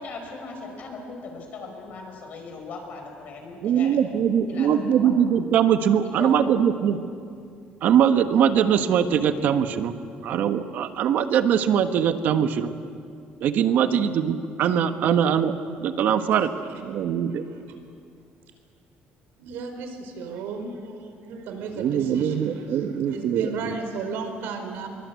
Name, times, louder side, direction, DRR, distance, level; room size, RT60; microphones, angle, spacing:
voice 1, 0.0-4.2 4.5-5.1 6.2-6.4, left 4 dB, 45° left, 2 dB, 5.3 m, -38 dB
voice 2, 3.6-7.0 7.8-9.9 10.2-12.7 13.4-15.5 15.8-17.4 21.8-23.8, right 8 dB, 55° right, 8 dB, 1.3 m, -22 dB
voice 3, 19.4-24.9, right 4 dB, 85° right, 6 dB, 4.4 m, -35 dB
25.0 x 23.0 x 8.3 m, 2.4 s
cardioid pair, 170°, 4 cm